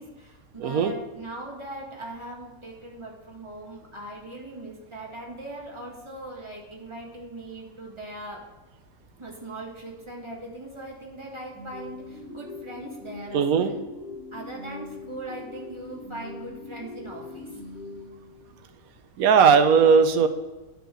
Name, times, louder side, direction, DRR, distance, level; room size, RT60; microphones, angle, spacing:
voice 1, 0.0-8.5 9.2-13.7 14.3-17.6, right 1 dB, 20° right, -2 dB, 1.9 m, -40 dB
voice 2, 0.6-0.9 13.3-13.7 19.2-20.3, right 6 dB, 85° right, 8 dB, 1.2 m, -18 dB
sound 1, 11.5-18.7, left 2 dB, 40° left, 2.7 m, -41 dB
10.0 x 4.9 x 6.4 m, 1.2 s
omnidirectional pair, 1.5 m